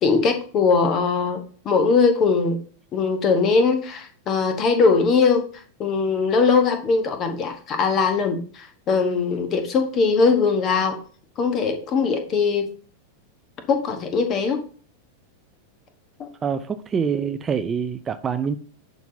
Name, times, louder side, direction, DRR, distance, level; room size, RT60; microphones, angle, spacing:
voice 1, 0.0-2.6 2.9-5.4 5.8-11.0 11.4-12.7 13.7-14.6 16.2-16.3, left 4 dB, 30° left, 1.2 m, -20 dB
voice 2, 16.4-18.6, right 6 dB, 20° right, 0.4 m, -25 dB
11.0 x 4.0 x 2.8 m
figure-of-eight pair, 90°, 0 cm